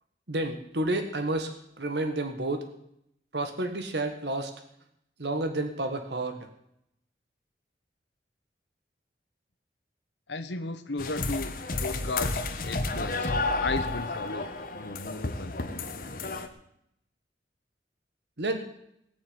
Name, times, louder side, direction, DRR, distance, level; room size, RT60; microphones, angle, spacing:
voice 1, 0.3-1.5 1.8-2.7 3.3-4.5 5.2-6.4 18.4-18.6, right 2 dB, 70° right, 6 dB, 1.6 m, -30 dB
voice 2, 10.3-13.3 13.6-14.5 14.7-15.7, left 3 dB, 80° left, 10 dB, 1.1 m, -35 dB
sound 1, 11.0-16.5, left 2 dB, 50° left, 1.3 m, -31 dB
18.5 x 6.7 x 9.7 m, 0.76 s
head